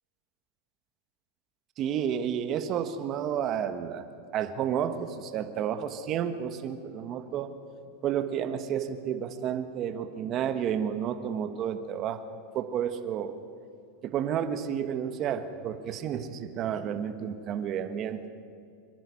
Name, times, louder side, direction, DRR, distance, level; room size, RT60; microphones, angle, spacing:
voice 1, 1.8-4.0 4.3-7.5 8.0-13.4 14.0-18.3, right 9 dB, 40° right, 9 dB, 1.4 m, -31 dB
25.0 x 11.0 x 9.8 m, 2.5 s
supercardioid pair, 130°, 0 cm